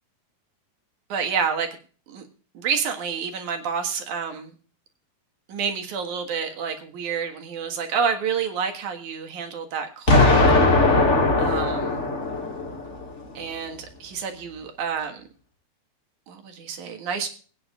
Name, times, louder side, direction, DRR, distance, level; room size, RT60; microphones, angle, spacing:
voice 1, 1.1-1.7 2.1-2.2 2.5-4.5 5.5-10.5 10.8-10.9 11.4-12.0 13.3-15.3 16.3-17.3, right 6 dB, 60° right, 5 dB, 2.9 m, -28 dB
Explosion, 10.1-13.0, left 2 dB, 35° left, 1.2 m, -19 dB
22.0 x 9.4 x 2.4 m, 0.39 s
omnidirectional pair, 4.2 m